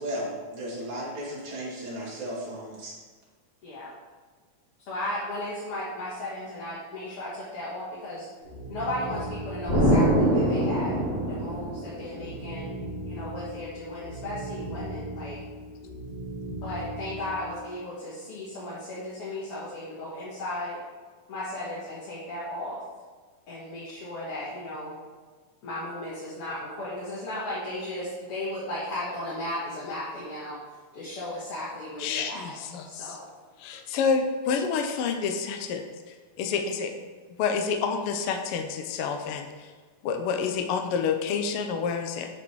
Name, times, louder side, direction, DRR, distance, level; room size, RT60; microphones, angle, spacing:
voice 1, 0.0-2.9, equal, 45° right, -6 dB, 2.8 m, -35 dB
voice 2, 3.6-3.9 4.9-8.3 8.7-11.0 11.3-12.7 13.1-15.4 16.6-20.8 21.3-22.8 23.5-24.9 25.6-30.6 30.9-32.6 32.8-33.3, left 1 dB, 55° left, -8 dB, 2.2 m, -35 dB
sound 1, 8.4-17.7, right 1 dB, 60° right, 3.1 m, -38 dB
Explosion, 9.7-12.3, equal, 30° left, 0.8 m, -23 dB
voice 3, 32.0-33.2 33.6-36.9 37.3-39.7 40.0-42.3, left 6 dB, 85° left, 5 dB, 1.2 m, -29 dB
8.4 x 5.0 x 4.7 m, 1.4 s
omnidirectional pair, 3.5 m